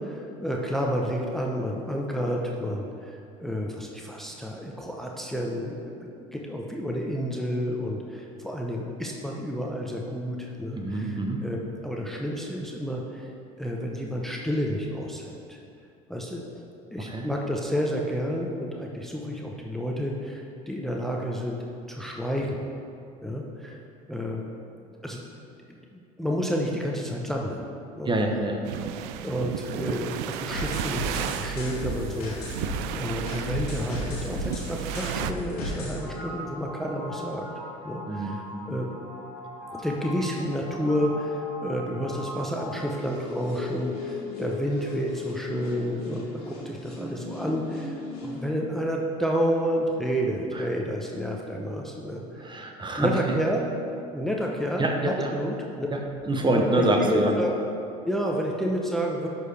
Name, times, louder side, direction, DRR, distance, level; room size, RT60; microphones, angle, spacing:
voice 1, 0.0-11.6 11.8-13.3 13.6-15.6 16.1-16.4 16.9-21.6 21.9-22.6 23.2-23.8 24.1-24.4 25.0-25.2 25.7-27.7 28.0-28.1 29.2-37.4 37.8-38.9 39.7-52.2 53.0-53.7 54.1-55.9 56.5-57.5 58.0-59.3, equal, ahead, -1 dB, 0.8 m, -30 dB
voice 2, 10.7-11.4 17.0-17.3 28.0-28.6 38.1-38.7 50.5-50.7 51.2-51.3 52.4-53.4 54.8-55.3 55.9-57.3, right 1 dB, 25° right, 2 dB, 0.9 m, -26 dB
sound 1, 28.7-35.3, right 11 dB, 65° right, 0.4 m, -34 dB
sound 2, 30.5-48.5, left 1 dB, 90° left, 1.8 m, -36 dB
11.0 x 4.7 x 3.4 m, 2.5 s
hypercardioid pair, 65°, 19 cm